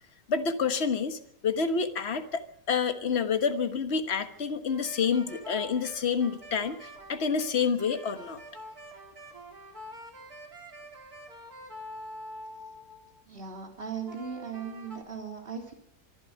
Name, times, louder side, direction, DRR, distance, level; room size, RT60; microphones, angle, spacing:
voice 1, 0.3-8.4, left 6 dB, 45° left, 8 dB, 1.6 m, -28 dB
sound 1, 4.7-13.2 14.1-15.0, equal, 85° right, 3.9 m, -46 dB
voice 2, 13.3-15.7, right 6 dB, 35° right, 2 dB, 3.6 m, -38 dB
25.0 x 11.5 x 9.4 m, 0.73 s
omnidirectional pair, 1.6 m